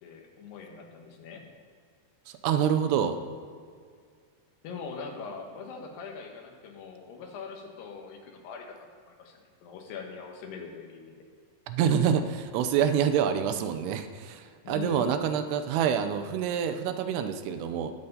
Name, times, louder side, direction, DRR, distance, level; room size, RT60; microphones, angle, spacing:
voice 1, 0.0-1.4 4.6-11.2 14.6-15.3, left 5 dB, 85° left, 2 dB, 3.5 m, -42 dB
voice 2, 2.4-3.2 11.7-17.9, right 8 dB, 85° right, 8 dB, 2.8 m, -27 dB
19.0 x 7.1 x 4.0 m, 2.1 s
omnidirectional pair, 4.6 m